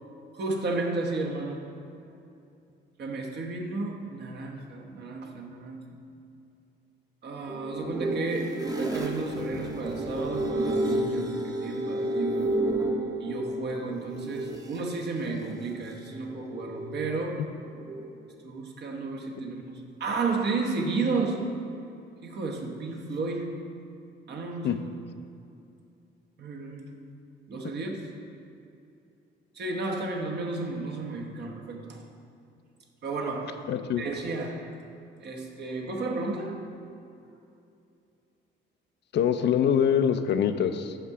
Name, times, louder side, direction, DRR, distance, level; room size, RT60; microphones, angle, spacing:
voice 1, 0.3-1.7 3.0-6.0 7.2-12.5 13.2-17.5 18.4-21.5 22.2-23.6 24.3-24.8 26.4-26.9 27.5-28.0 29.5-32.0 33.0-33.7 34.0-34.7 35.2-36.7, right 3 dB, 60° right, 1 dB, 1.0 m, -32 dB
sound 1, 7.5-14.8 15.7-17.3 17.6-18.3 20.7-21.6, right 1 dB, 20° right, 0.8 m, -31 dB
voice 2, 33.7-34.0 39.1-41.0, left 8 dB, 60° left, 9 dB, 0.4 m, -24 dB
6.5 x 5.7 x 4.8 m, 2.6 s
cardioid pair, 90°, 20 cm